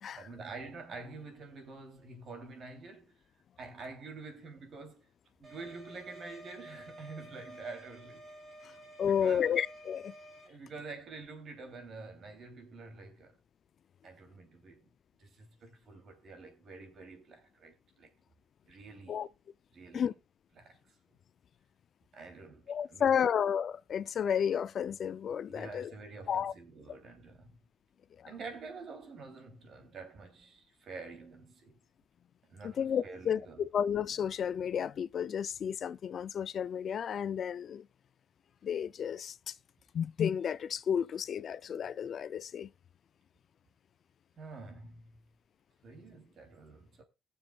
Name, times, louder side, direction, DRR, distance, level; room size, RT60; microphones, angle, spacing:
voice 1, 0.2-3.2 3.6-5.1 5.4-8.3 8.7-8.8 9.1-9.5 10.5-13.4 14.0-14.9 15.2-18.1 18.7-19.3 19.7-20.1 20.6-20.9 22.1-23.3 25.5-27.6 28.2-31.8 32.5-33.7 44.4-45.2 45.8-47.0, right 3 dB, 60° right, 3.1 m, -48 dB
sound 1, 5.4-10.5, right 1 dB, 35° right, 3.9 m, -51 dB
voice 2, 9.0-10.1 19.1-19.3 19.9-20.1 22.7-25.9 26.3-26.5 28.2-28.3 32.6-37.9 38.6-39.6 39.9-42.7, left 8 dB, 60° left, 0.4 m, -32 dB
21.0 x 7.1 x 2.4 m
cardioid pair, 90°, 0 cm